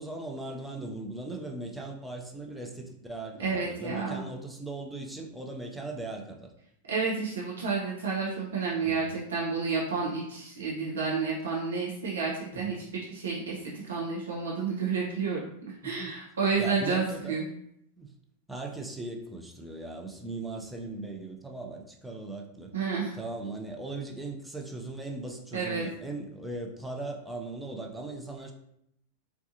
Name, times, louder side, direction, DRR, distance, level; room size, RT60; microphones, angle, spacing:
voice 1, 0.0-6.5 8.8-9.1 12.5-12.8 15.8-16.1 16.6-17.4 18.0-18.1 18.5-22.7 23.1-28.5, right 2 dB, 5° right, 0 dB, 0.6 m, -38 dB
voice 2, 3.4-4.2 6.9-13.6 13.8-15.4 15.8-17.5 22.7-23.2 25.5-25.9, right 5 dB, 70° right, -5 dB, 0.7 m, -30 dB
4.1 x 2.3 x 2.7 m, 0.75 s
figure-of-eight pair, 90°, 0 cm